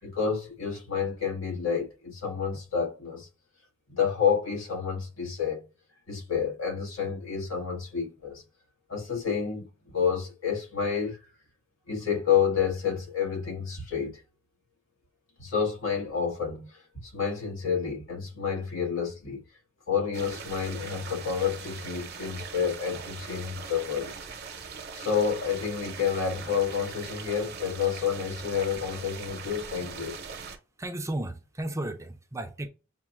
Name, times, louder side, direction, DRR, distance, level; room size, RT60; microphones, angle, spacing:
voice 1, 0.0-3.3 3.9-5.6 6.1-8.4 8.9-11.2 11.9-14.2 15.4-19.4 19.9-24.1 24.9-30.1, left 7 dB, 90° left, 1.9 m, -29 dB
sound 1, 20.1-30.6, right 5 dB, 55° right, 0.8 m, -41 dB
voice 2, 30.8-32.7, right 1 dB, 15° right, 0.5 m, -34 dB
7.2 x 2.5 x 2.5 m
head